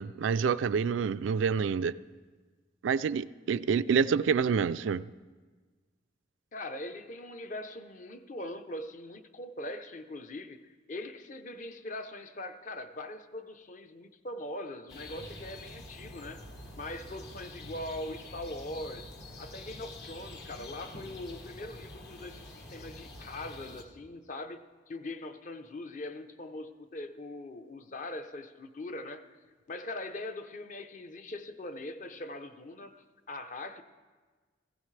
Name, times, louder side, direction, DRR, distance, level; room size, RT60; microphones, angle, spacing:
voice 1, 0.0-1.9 2.8-5.1, right 6 dB, 85° right, 0.3 m, -27 dB
voice 2, 6.5-16.4 16.7-29.4 29.7-33.8, left 1 dB, 40° left, 0.7 m, -41 dB
sound 1, 14.9-23.8, left 1 dB, 60° left, 1.5 m, -47 dB
18.0 x 15.5 x 3.3 m
head